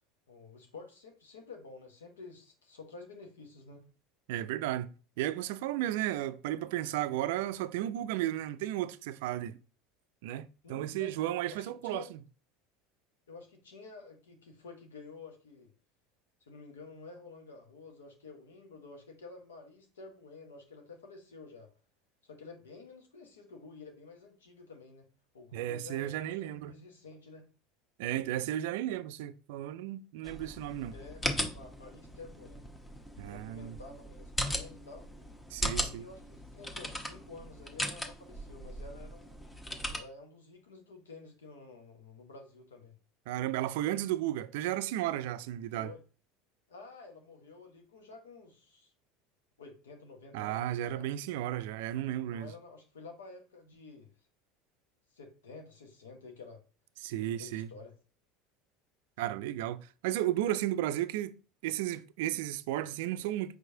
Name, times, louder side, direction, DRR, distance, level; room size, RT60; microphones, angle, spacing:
voice 1, 0.3-3.8 10.6-11.2 11.5-12.1 13.3-15.7 16.5-21.7 22.2-25.1 25.3-27.5 30.9-32.7 33.3-35.1 35.7-39.4 39.9-42.9 45.7-46.0 46.7-48.9 49.6-51.1 52.3-54.1 55.1-56.6 57.2-57.9, left 4 dB, 90° left, 1.0 m, -50 dB
voice 2, 4.3-9.6 10.2-12.1 25.5-26.7 28.0-30.9 33.2-33.8 35.5-36.1 43.3-45.9 50.3-52.5 57.0-57.7 59.2-61.3 61.6-63.6, right 13 dB, 70° right, 0.3 m, -34 dB
sound 1, 30.2-40.0, equal, 15° left, 1.0 m, -38 dB
4.7 x 4.0 x 2.7 m
hypercardioid pair, 80°, 0 cm